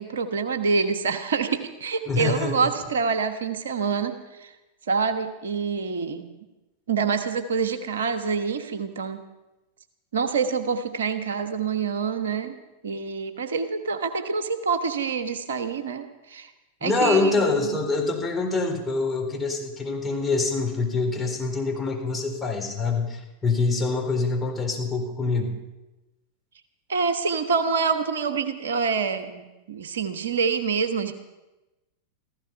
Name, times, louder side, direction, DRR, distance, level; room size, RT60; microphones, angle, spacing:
voice 1, 0.0-4.5 4.9-6.3 6.9-9.2 10.1-16.5 16.8-17.8 26.9-31.1, right 5 dB, 65° right, 8 dB, 1.1 m, -26 dB
voice 2, 2.1-2.7 16.8-25.6, left 3 dB, 10° left, -1 dB, 4.1 m, -25 dB
16.0 x 15.0 x 5.6 m, 1.0 s
figure-of-eight pair, 90°, 0 cm